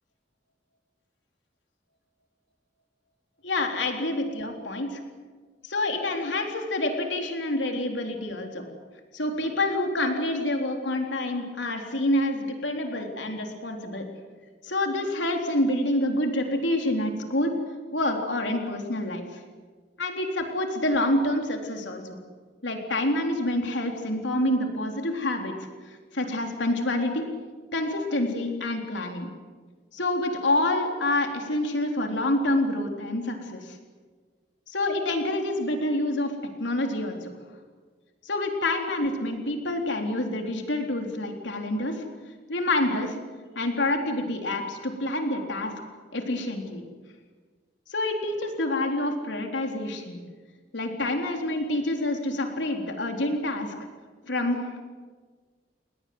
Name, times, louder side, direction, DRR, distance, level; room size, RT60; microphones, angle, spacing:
voice 1, 3.4-5.0 5.6-8.6 9.1-14.1 14.6-17.5 17.9-19.4 20.0-22.2 22.6-25.6 26.1-27.3 27.7-29.3 29.9-33.8 34.7-36.3 36.6-37.3 38.2-42.1 42.5-43.2 43.6-45.7 46.1-46.8 47.9-50.2 50.7-53.7 54.2-54.8, left 1 dB, 90° left, 3 dB, 3.8 m, -27 dB
29.5 x 21.0 x 8.0 m, 1.5 s
head